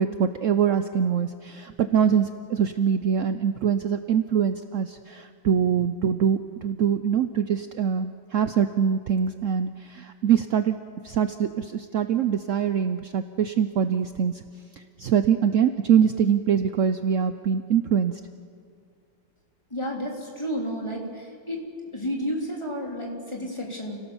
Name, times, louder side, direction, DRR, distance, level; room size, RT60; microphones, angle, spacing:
voice 1, 0.0-10.8 11.0-14.4 14.8-18.2, right 8 dB, 70° right, 9 dB, 0.7 m, -24 dB
voice 2, 19.7-21.6 21.9-24.0, equal, 15° left, -1 dB, 3.6 m, -31 dB
29.0 x 17.5 x 7.2 m, 2.2 s
omnidirectional pair, 2.1 m